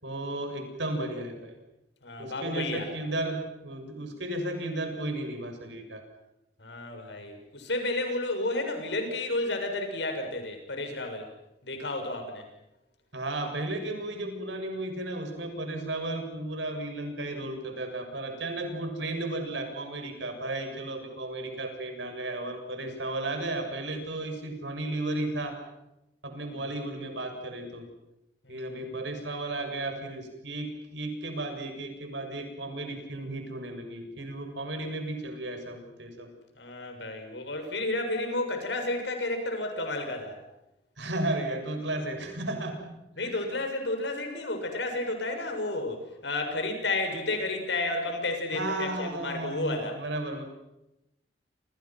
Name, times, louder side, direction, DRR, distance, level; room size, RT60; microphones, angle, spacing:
voice 1, 0.0-1.6 2.2-6.0 13.1-25.6 26.2-27.9 28.5-36.3 41.0-43.3 48.5-50.4, right 2 dB, 90° right, 5 dB, 7.1 m, -34 dB
voice 2, 2.0-2.9 6.6-11.3 11.6-12.4 26.5-26.6 28.4-28.8 36.6-40.4 43.2-50.0, left 2 dB, 80° left, 5 dB, 6.9 m, -32 dB
29.5 x 28.0 x 6.1 m, 0.90 s
head